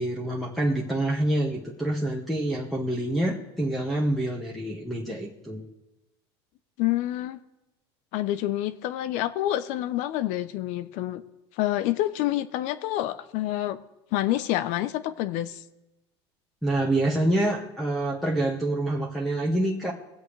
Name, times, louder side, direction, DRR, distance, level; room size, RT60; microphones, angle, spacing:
voice 1, 0.0-5.6 16.6-19.9, right 1 dB, ahead, -5 dB, 1.5 m, -26 dB
voice 2, 6.8-7.4 8.1-11.2 11.6-13.8 14.1-15.6, left 14 dB, 60° left, 13 dB, 0.8 m, -27 dB
23.0 x 8.1 x 3.3 m, 1.0 s
supercardioid pair, 115°, 14 cm